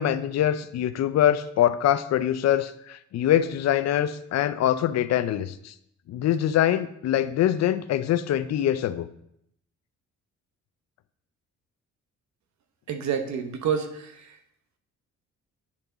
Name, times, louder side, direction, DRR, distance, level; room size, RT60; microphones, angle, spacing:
voice 1, 0.0-5.7 6.1-9.1, left 11 dB, 60° left, 13 dB, 0.5 m, -24 dB
voice 2, 12.9-14.4, right 7 dB, 65° right, 6 dB, 1.0 m, -29 dB
9.7 x 3.5 x 3.9 m, 0.75 s
cardioid pair, 90°, 30 cm